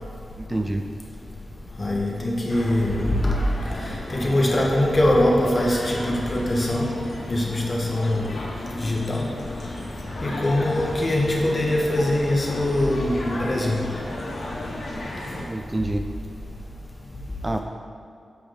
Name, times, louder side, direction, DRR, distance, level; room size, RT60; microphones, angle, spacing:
voice 1, 0.4-0.9 15.5-16.1 17.4-17.6, right 1 dB, 25° right, 5 dB, 0.3 m, -27 dB
voice 2, 1.8-3.4 4.1-6.9 7.3-8.2 8.8-9.2 10.2-13.8, left 1 dB, 35° left, -2 dB, 1.2 m, -22 dB
sound 1, 2.5-15.4, left 1 dB, 80° left, 1.2 m, -33 dB
7.0 x 4.7 x 3.8 m, 2.3 s
cardioid pair, 65°, 0 cm